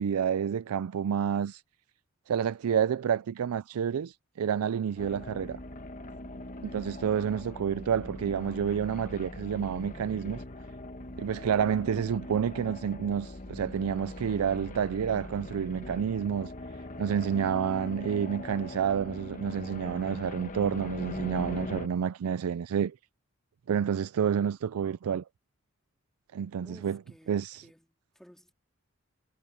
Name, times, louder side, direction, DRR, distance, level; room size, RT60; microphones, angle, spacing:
voice 1, 0.0-1.6 2.3-5.6 6.6-10.4 11.2-16.5 17.0-23.0 23.7-25.2 26.3-27.0 27.3-27.7, right 7 dB, 85° right, 0.4 m, -29 dB
sound 1, 5.0-21.9, left 1 dB, 35° left, 1.3 m, -41 dB
voice 2, 11.0-11.4 26.6-27.9 28.1-28.5, equal, ahead, 2.5 m, -56 dB
head